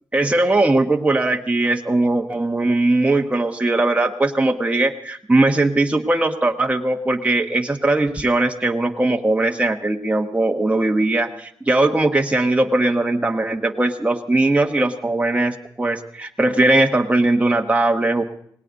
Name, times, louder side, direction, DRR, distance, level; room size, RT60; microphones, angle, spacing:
voice 1, 0.1-18.2, right 2 dB, 15° right, 3 dB, 1.3 m, -19 dB
19.5 x 18.0 x 4.1 m, 0.64 s
cardioid pair, 65°, 8 cm